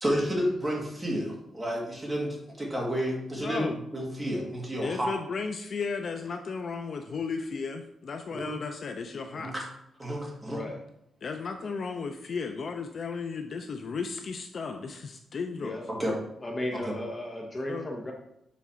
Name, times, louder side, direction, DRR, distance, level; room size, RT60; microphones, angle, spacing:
voice 1, 0.0-5.1 8.3-8.5 9.3-9.6 10.0-10.6 15.9-16.2 16.7-17.0, equal, 15° right, -2 dB, 1.7 m, -31 dB
voice 2, 3.4-3.8 4.8-9.5 11.2-15.8 17.7-17.9, left 5 dB, 40° left, 6 dB, 0.4 m, -34 dB
voice 3, 10.5-10.8 11.6-11.7 15.6-15.8 16.4-18.1, left 1 dB, 20° left, 0 dB, 0.8 m, -35 dB
7.2 x 4.0 x 5.7 m, 0.78 s
wide cardioid pair, 170°, 0 cm